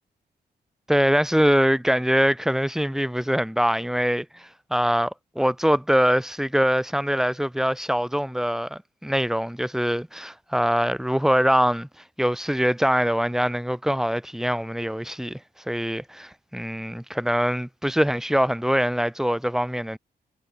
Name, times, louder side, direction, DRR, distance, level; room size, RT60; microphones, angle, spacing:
voice 1, 0.9-11.9 12.2-15.4 15.7-20.0, equal, 5° right, 5.5 m, -23 dB
cardioid pair, 100°, 17 cm